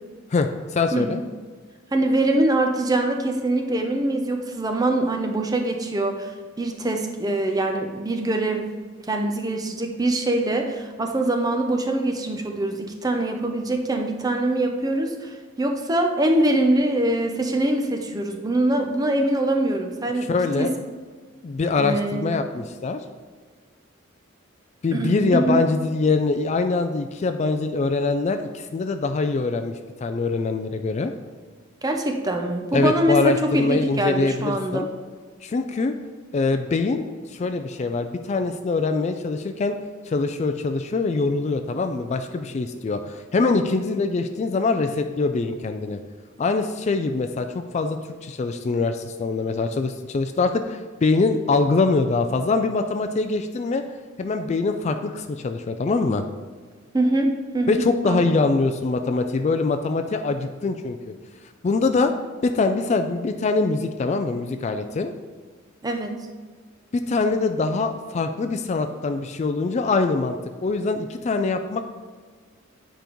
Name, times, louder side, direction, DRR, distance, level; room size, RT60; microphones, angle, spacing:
voice 1, 0.3-1.2 20.3-20.7 21.4-23.0 24.8-29.7 30.0-31.1 32.7-34.9 35.4-35.9 36.3-37.0 37.3-39.7 40.1-46.0 46.4-53.8 54.2-56.2 57.7-61.1 61.6-62.1 62.4-65.1 66.9-71.8, left 3 dB, 35° left, 7 dB, 0.3 m, -23 dB
voice 2, 1.9-6.3 6.6-8.7 9.0-20.7 21.8-22.4 24.9-25.6 31.8-34.9 56.9-58.2 65.8-66.2, right 1 dB, 20° right, 3 dB, 0.6 m, -23 dB
9.1 x 5.1 x 3.0 m, 1.5 s
head